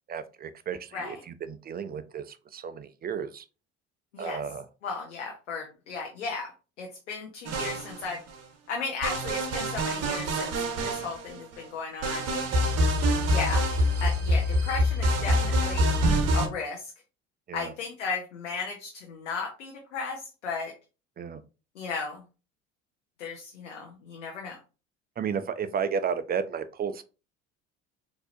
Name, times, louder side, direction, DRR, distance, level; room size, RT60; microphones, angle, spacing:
voice 1, 0.1-3.4 4.2-4.6 12.9-13.3 17.5-17.7 21.2-21.4 25.2-27.0, right 7 dB, 25° right, 0.4 m, -33 dB
voice 2, 4.8-6.5 6.8-8.2 8.7-10.5 10.8-12.3 13.3-13.6 14.0-16.0 16.3-16.9 17.5-20.7 21.8-22.2 23.2-24.6, left 5 dB, 90° left, 0.7 m, -35 dB
sound 1, 7.5-8.3 9.0-11.5 12.0-16.5, equal, 45° right, 1.0 m, -25 dB
4.0 x 2.8 x 2.5 m
hypercardioid pair, 65°, 35 cm